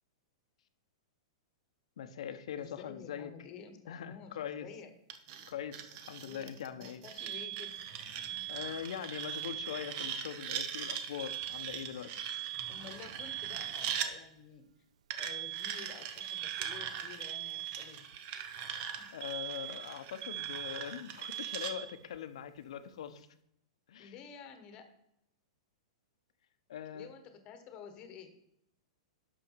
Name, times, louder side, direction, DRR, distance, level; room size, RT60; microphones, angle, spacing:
voice 1, 2.0-3.3 3.9-4.7 5.5-7.0 8.5-12.1 19.1-23.3 23.9-24.1 26.7-27.1, left 9 dB, 70° left, 10 dB, 1.0 m, -42 dB
voice 2, 2.6-4.9 6.2-7.8 8.3-8.4 12.7-14.6 15.2-18.1 18.9-19.1 24.0-24.9 26.9-28.4, left 7 dB, 25° left, 8 dB, 1.2 m, -51 dB
sound 1, 5.1-14.1 15.1-21.7, right 8 dB, 35° right, 0.8 m, -42 dB
Alarm, 7.2-10.1 11.2-14.2 15.2-18.2 19.2-22.2, right 13 dB, 85° right, 0.4 m, -41 dB
11.0 x 6.3 x 4.6 m, 0.77 s
supercardioid pair, 165°, 3 cm